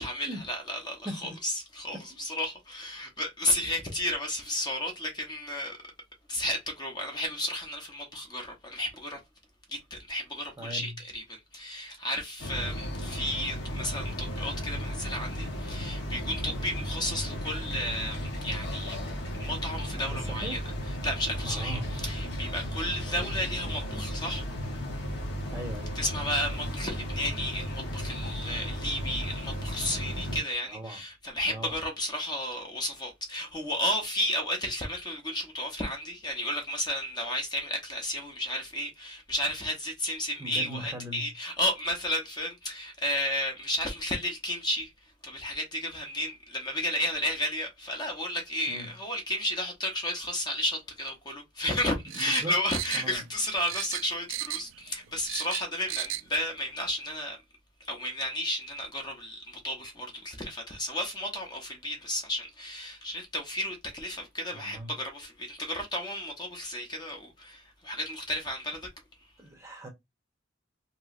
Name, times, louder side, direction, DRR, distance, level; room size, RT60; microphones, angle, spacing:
voice 1, 0.0-5.8 6.3-9.2 9.7-19.0 19.4-20.6 20.9-24.4 25.9-44.9 45.2-57.4 57.8-68.9, left 1 dB, 20° left, 0.7 m, -33 dB
voice 2, 1.0-1.4 2.1-2.2 10.6-10.9 19.9-20.6 21.4-21.9 23.1-23.3 25.5-26.0 30.7-31.0 31.5-31.8 40.4-41.3 48.7-48.9 52.1-52.6 52.9-53.2 64.5-64.9 69.4-69.9, right 1 dB, 15° right, 0.7 m, -39 dB
sound 1, 12.4-30.4, equal, 60° left, 0.9 m, -35 dB
sound 2, 52.1-53.4 53.7-54.8 55.1-56.3 56.6-56.7, right 15 dB, 75° right, 0.3 m, -35 dB
3.0 x 2.9 x 2.4 m
head